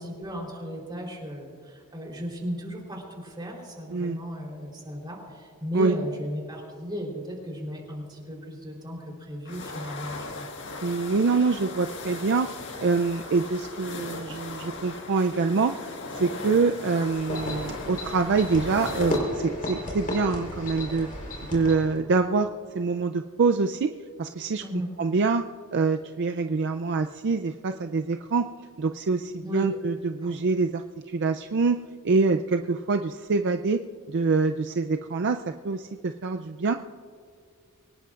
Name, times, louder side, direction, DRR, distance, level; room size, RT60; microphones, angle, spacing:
voice 1, 0.0-10.5 24.6-24.9 29.4-29.8 30.2-30.3, equal, 20° right, -1 dB, 3.6 m, -35 dB
sound 1, 9.4-19.2, left 2 dB, 55° left, 1.6 m, -38 dB
voice 2, 10.8-12.5 12.8-15.7 16.1-21.1 21.5-22.5 22.7-23.9 24.2-24.6 25.0-25.4 25.7-28.5 28.8-31.8 32.0-33.8 34.1-36.7, right 4 dB, 55° right, 6 dB, 0.4 m, -25 dB
sound 2, 17.1-22.0, left 1 dB, 40° left, 3.9 m, -33 dB
24.0 x 18.5 x 2.5 m, 2.2 s
head